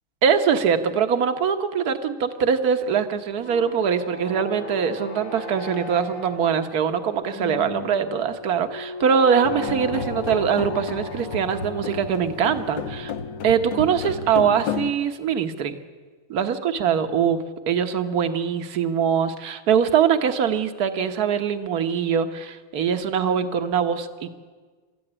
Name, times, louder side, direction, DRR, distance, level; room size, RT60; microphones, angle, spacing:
voice 1, 0.2-13.1 13.4-15.8 16.3-17.4 17.7-24.3, right 7 dB, 50° right, 8 dB, 1.6 m, -22 dB
sound 1, 3.2-14.4, left 2 dB, 90° left, 3.1 m, -37 dB
sound 2, 9.4-14.9, left 7 dB, 65° left, 1.5 m, -32 dB
28.0 x 13.5 x 10.0 m, 1.5 s
omnidirectional pair, 2.3 m